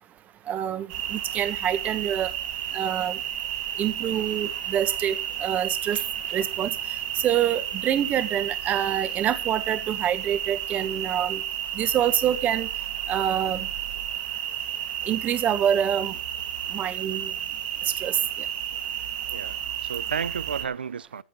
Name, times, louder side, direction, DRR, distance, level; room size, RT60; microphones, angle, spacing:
voice 1, 0.5-2.3 2.7-3.2 3.8-6.0 6.3-6.7 7.2-11.4 11.7-12.7 13.1-13.7 15.1-16.1 16.7-17.3 17.8-18.2, right 10 dB, 30° right, 1.5 m, -26 dB
sound 1, 0.9-20.6, right 10 dB, 60° right, 2.9 m, -32 dB
voice 2, 19.3-21.2, right 6 dB, 90° right, 0.6 m, -32 dB
14.5 x 5.9 x 7.4 m
hypercardioid pair, 110°, 5 cm